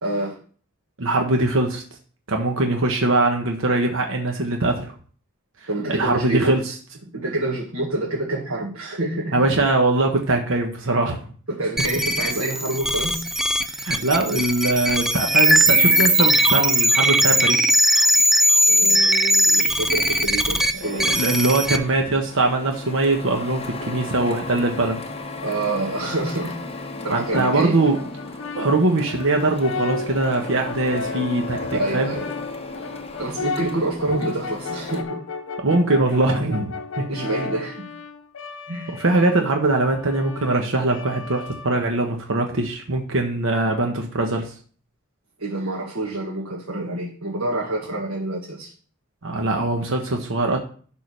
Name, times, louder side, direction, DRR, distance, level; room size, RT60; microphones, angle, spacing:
voice 1, 0.0-0.4 5.7-6.7 7.1-9.4 11.5-13.2 18.7-21.1 25.4-27.8 31.7-32.3 33.2-35.2 37.1-37.9 38.7-39.0 45.4-48.7, right 2 dB, 80° right, -3 dB, 1.8 m, -27 dB
voice 2, 1.0-1.8 2.3-4.9 5.9-6.6 9.3-11.2 13.7-17.6 20.7-25.0 27.1-28.0 28.6-32.1 35.6-37.0 39.0-44.5 49.2-50.6, right 2 dB, 65° right, 2 dB, 1.1 m, -22 dB
sound 1, 11.8-21.8, equal, ahead, 0.5 m, -19 dB
Printer, 20.8-35.0, left 3 dB, 30° left, 1.1 m, -35 dB
Brass instrument, 27.3-42.1, left 4 dB, 65° left, 0.8 m, -34 dB
11.0 x 3.8 x 6.4 m, 0.43 s
head